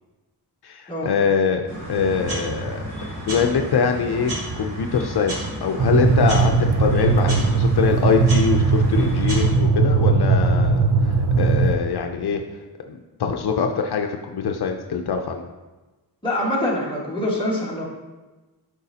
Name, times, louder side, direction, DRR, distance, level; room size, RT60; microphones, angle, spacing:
voice 1, 0.6-1.6 1.9-2.8 3.3-4.3 4.6-10.8 11.4-12.4 12.9-15.5, left 6 dB, 70° left, 4 dB, 0.6 m, -23 dB
sound 1, 1.7-9.5, right 1 dB, 90° right, 2.2 m, -31 dB
sound 2, 5.8-11.8, right 4 dB, 55° right, 0.6 m, -19 dB
voice 2, 16.2-17.8, left 1 dB, 10° left, -5 dB, 1.6 m, -24 dB
12.0 x 4.9 x 2.8 m, 1.2 s
wide cardioid pair, 170°, 41 cm